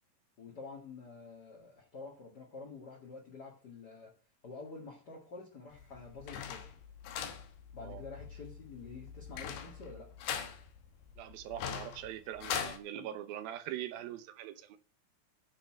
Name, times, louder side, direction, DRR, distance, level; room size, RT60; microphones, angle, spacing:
voice 1, 0.4-4.1 4.4-6.7 7.7-10.1 12.9-13.1, left 4 dB, 35° left, 2.1 m, -48 dB
sound 1, 5.7-12.8, left 8 dB, 80° left, 3.0 m, -42 dB
voice 2, 11.2-14.8, right 12 dB, 85° right, 2.8 m, -42 dB
9.9 x 5.6 x 7.6 m
omnidirectional pair, 4.1 m